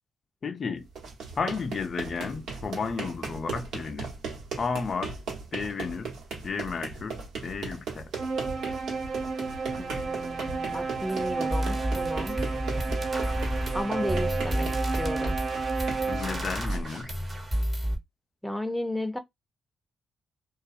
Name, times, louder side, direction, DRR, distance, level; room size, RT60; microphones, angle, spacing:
voice 1, 0.4-0.9 1.4-4.1 4.6-5.1 5.5-6.1 6.4-8.1 12.9-13.0 16.1-17.1, left 5 dB, 50° left, 0.4 m, -32 dB
sound 1, 0.8-17.8, right 4 dB, 80° right, 1.2 m, -38 dB
sound 2, 8.1-16.7, right 4 dB, 50° right, 0.8 m, -32 dB
voice 2, 9.8-12.4 13.7-15.4 18.4-19.2, left 1 dB, ahead, 0.6 m, -33 dB
sound 3, 11.1-11.2 11.5-18.0, equal, 25° right, 1.2 m, -31 dB
2.3 x 2.3 x 2.6 m
supercardioid pair, 60°, 0 cm